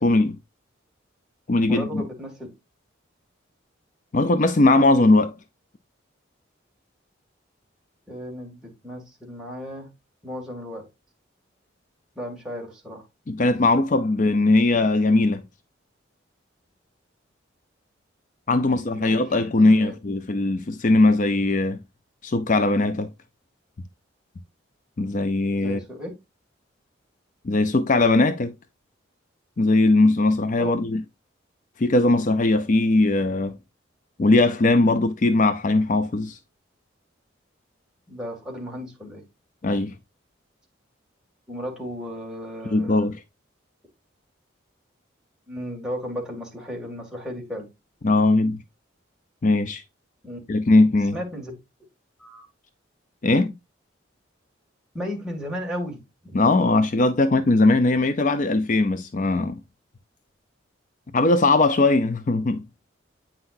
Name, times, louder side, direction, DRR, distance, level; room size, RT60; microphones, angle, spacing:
voice 1, 0.0-0.4 1.5-2.0 4.1-5.3 13.3-15.4 18.5-21.8 22.2-23.1 25.0-25.8 27.4-28.6 29.6-31.0 31.8-33.6 34.2-36.4 39.6-39.9 42.7-43.2 48.0-48.6 49.4-49.8 50.5-51.2 53.2-53.5 56.3-59.6 61.1-62.6, left 2 dB, 40° left, 0.4 m, -20 dB
voice 2, 1.7-2.5 8.1-9.9 10.2-10.9 12.2-13.0 18.6-19.1 19.6-19.9 25.6-26.1 30.6-30.7 38.1-39.2 41.5-43.1 45.5-47.7 50.2-50.4 51.1-51.5 52.2-52.5 54.9-56.6, equal, 5° right, 2.2 m, -35 dB
8.7 x 5.7 x 2.6 m
head